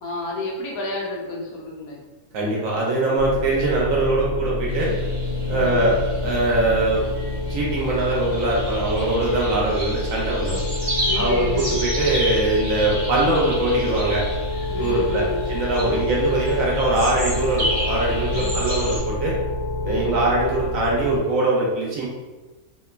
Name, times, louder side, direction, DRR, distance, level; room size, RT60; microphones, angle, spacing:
voice 1, 0.0-2.0 5.5-5.9 10.4-10.7 11.1-11.8 14.7-15.4 15.8-16.1 18.3-18.6 19.8-20.3, left 2 dB, 75° left, -2 dB, 1.0 m, -30 dB
voice 2, 2.3-4.9 5.5-6.0 6.2-7.1 7.5-10.6 11.1-14.2 14.8-15.2 15.5-19.4 19.8-22.1, right 2 dB, 70° right, -4 dB, 1.0 m, -22 dB
sound 1, 3.2-21.2, left 2 dB, 45° left, 0.3 m, -28 dB
sound 2, 4.7-19.0, equal, 50° right, 0.7 m, -32 dB
2.9 x 2.1 x 2.3 m, 1.2 s
omnidirectional pair, 1.6 m